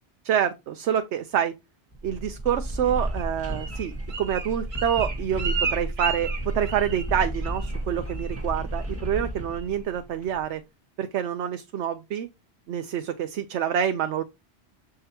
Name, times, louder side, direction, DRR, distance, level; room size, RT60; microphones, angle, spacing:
voice 1, 0.2-1.5 2.0-3.9 4.2-10.6 11.0-12.3 12.7-14.2, right 9 dB, 80° right, 0.9 m, -27 dB
sound 1, 1.9-10.4, right 1 dB, 15° right, 1.5 m, -32 dB
Bird, 3.1-7.1 7.4-7.8 8.1-8.4 8.7-9.1 9.5-9.6, right 5 dB, 65° right, 1.4 m, -33 dB
6.7 x 3.6 x 4.3 m
omnidirectional pair, 1.1 m